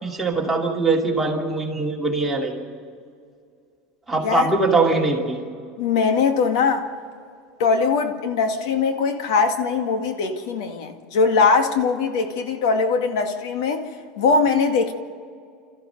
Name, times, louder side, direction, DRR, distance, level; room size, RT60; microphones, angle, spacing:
voice 1, 0.0-2.5 4.1-5.4, right 3 dB, 5° right, -2 dB, 2.6 m, -22 dB
voice 2, 5.8-6.9 7.6-13.9 14.2-14.9, left 5 dB, 80° left, 6 dB, 2.0 m, -21 dB
29.5 x 14.0 x 6.7 m, 2.3 s
supercardioid pair, 155°, 2 cm